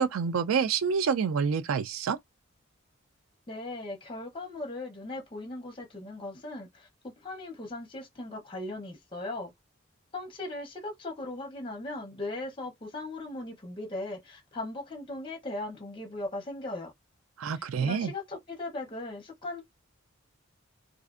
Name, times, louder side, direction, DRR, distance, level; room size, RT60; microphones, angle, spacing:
voice 1, 0.0-2.2 17.4-18.1, right 6 dB, 85° right, 0.4 m, -27 dB
voice 2, 3.5-9.5 10.1-16.9 17.8-19.6, left 2 dB, 25° left, 0.7 m, -38 dB
2.5 x 2.4 x 2.4 m
head